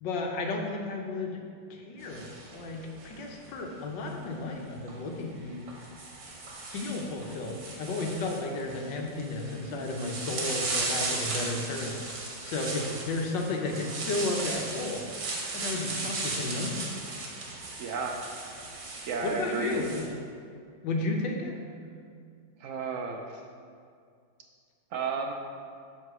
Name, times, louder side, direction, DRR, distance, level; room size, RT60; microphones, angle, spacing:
voice 1, 0.0-1.4 1.7-5.7 6.7-12.0 12.4-15.0 15.5-16.9 19.2-20.0 20.8-21.5, left 2 dB, 75° left, 1 dB, 1.5 m, -33 dB
sound 1, 2.0-3.5 4.8-4.9 5.7-20.1, right 3 dB, 65° right, 1.7 m, -36 dB
voice 2, 12.6-13.0 17.8-18.2 19.1-19.8 22.6-23.2 24.9-25.3, right 5 dB, 80° right, 2 dB, 0.7 m, -33 dB
7.8 x 3.8 x 6.0 m, 2.3 s
omnidirectional pair, 2.1 m